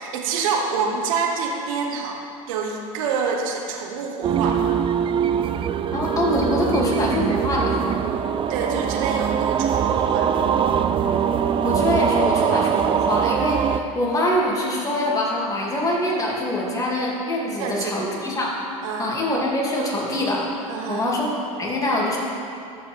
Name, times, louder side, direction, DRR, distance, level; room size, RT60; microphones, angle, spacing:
voice 1, 0.0-2.2 2.5-4.6 8.5-10.5 17.6-18.1 18.8-19.1 20.7-21.0, right 5 dB, 75° right, 1 dB, 1.2 m, -27 dB
sound 1, 4.2-13.8, right 8 dB, 30° right, 0.4 m, -22 dB
voice 2, 5.9-7.8 11.6-18.5 19.0-20.5 20.9-21.3 21.6-22.2, left 1 dB, 20° left, -4 dB, 2.4 m, -24 dB
14.0 x 6.0 x 3.5 m, 2.6 s
hypercardioid pair, 90°, 18 cm